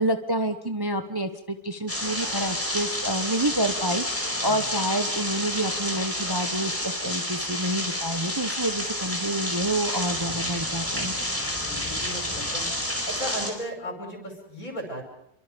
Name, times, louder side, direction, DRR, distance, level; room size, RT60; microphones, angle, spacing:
voice 1, 0.0-11.1, right 1 dB, 15° right, 7 dB, 1.1 m, -28 dB
sound 1, 1.9-13.5, left 1 dB, 10° left, 4.8 m, -29 dB
voice 2, 11.3-12.7 13.1-15.0, equal, 60° left, 3 dB, 6.3 m, -36 dB
28.5 x 24.0 x 5.3 m, 0.77 s
omnidirectional pair, 1.7 m